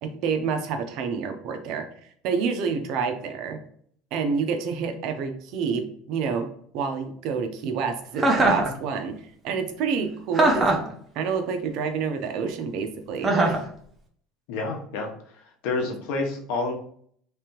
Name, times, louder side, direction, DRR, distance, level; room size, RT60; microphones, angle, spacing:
voice 1, 0.0-3.6 4.1-10.8 11.1-13.6, right 5 dB, 55° right, 6 dB, 0.6 m, -28 dB
Chuckle chortle, 8.2-8.7 10.3-10.9 13.2-13.7, right 2 dB, 15° right, 0.7 m, -20 dB
voice 2, 14.5-15.1 15.6-16.7, left 3 dB, 75° left, 2 dB, 0.9 m, -28 dB
3.3 x 3.3 x 3.0 m, 0.62 s
cardioid pair, 145°, 0 cm